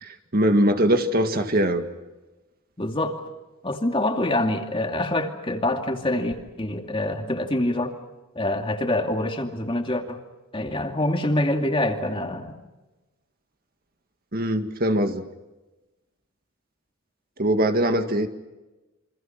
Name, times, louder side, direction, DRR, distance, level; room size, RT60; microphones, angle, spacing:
voice 1, 0.0-1.9 14.3-15.2 17.4-18.3, right 1 dB, 45° right, 7 dB, 1.8 m, -22 dB
voice 2, 2.8-3.2 3.6-7.9 8.3-10.2 10.5-12.6, left 1 dB, 25° left, 4 dB, 2.5 m, -25 dB
28.5 x 25.5 x 5.9 m, 1.1 s
head